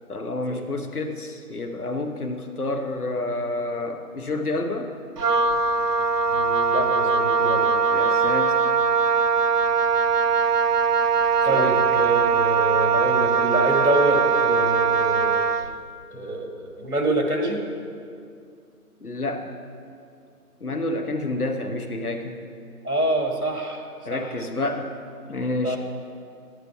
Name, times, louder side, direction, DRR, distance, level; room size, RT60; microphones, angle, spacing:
voice 1, 0.1-4.9 7.9-8.7 11.5-11.9 16.1-16.3 19.0-19.5 20.6-22.4 24.0-24.9 25.3-25.8, left 2 dB, 70° left, 5 dB, 1.0 m, -29 dB
Wind instrument woodwind instrument, 5.2-15.7, right 5 dB, 90° right, 0.6 m, -21 dB
voice 2, 6.3-7.7 11.4-15.4 16.1-17.7 22.8-24.3 25.6-25.8, right 1 dB, 65° right, 2 dB, 1.8 m, -26 dB
9.9 x 9.2 x 4.7 m, 2.4 s
figure-of-eight pair, 170°, 46 cm